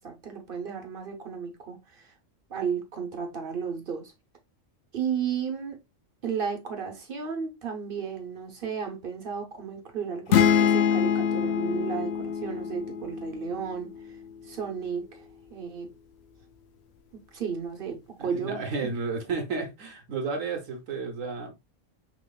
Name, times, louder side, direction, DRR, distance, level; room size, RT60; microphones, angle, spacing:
voice 1, 0.0-2.1 2.5-4.1 4.9-5.8 6.2-13.9 14.4-15.2 15.5-15.9 17.3-18.6, right 6 dB, 45° right, 1.0 m, -33 dB
sound 1, 10.3-14.0, left 8 dB, 65° left, 0.7 m, -25 dB
voice 2, 18.2-21.5, right 4 dB, 80° right, 1.3 m, -32 dB
5.9 x 3.0 x 2.3 m
omnidirectional pair, 1.3 m